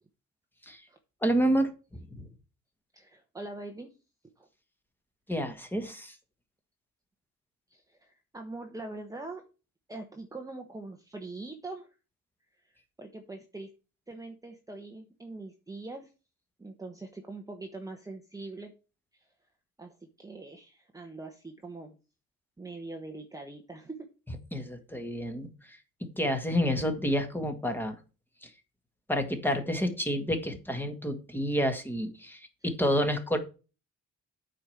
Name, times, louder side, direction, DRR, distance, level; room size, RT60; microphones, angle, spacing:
voice 1, 1.2-1.7 2.1-2.2 5.3-6.2 24.5-25.8 26.2-28.0 28.4-28.5 29.1-33.4, equal, 5° left, 6 dB, 1.8 m, -29 dB
voice 2, 2.9-3.9 4.4-4.5 7.7-9.4 9.9-11.9 12.6-12.7 13.0-13.7 14.1-16.1 16.6-18.7 19.1-19.3 19.8-22.0 22.6-24.1, right 2 dB, 10° right, 3 dB, 1.2 m, -43 dB
8.7 x 5.1 x 7.1 m, 0.32 s
cardioid pair, 135°, 30 cm